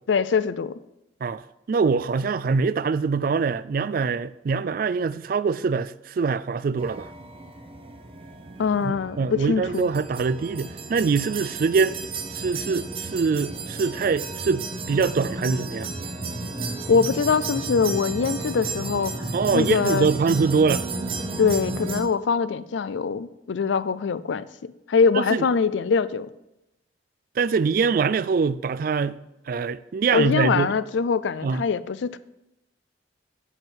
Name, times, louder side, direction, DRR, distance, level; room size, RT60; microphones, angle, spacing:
voice 1, 0.1-0.8 8.6-9.9 16.9-19.1 19.5-20.1 21.4-24.5 24.9-26.3 30.1-32.2, left 5 dB, 75° left, 0.4 m, -23 dB
voice 2, 1.2-7.1 8.8-12.0 12.3-15.9 19.3-20.9 25.1-25.5 27.4-29.2 29.5-30.7 31.4-31.6, right 5 dB, 50° right, 0.3 m, -24 dB
sound 1, 6.8-22.0, right 3 dB, 30° right, 0.8 m, -33 dB
7.9 x 7.6 x 4.6 m
head